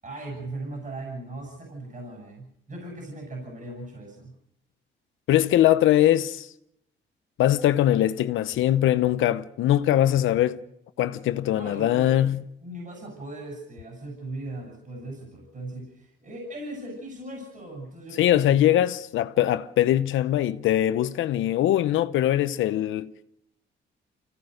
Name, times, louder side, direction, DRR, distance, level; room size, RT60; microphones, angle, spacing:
voice 1, 0.0-4.3 11.5-12.3 12.6-18.9, right 2 dB, 40° right, 6.8 m, -38 dB
voice 2, 5.3-6.5 7.4-10.6 11.0-12.4 18.2-23.2, left 12 dB, 80° left, 0.9 m, -22 dB
25.0 x 17.0 x 6.5 m
cardioid pair, 90°, 20 cm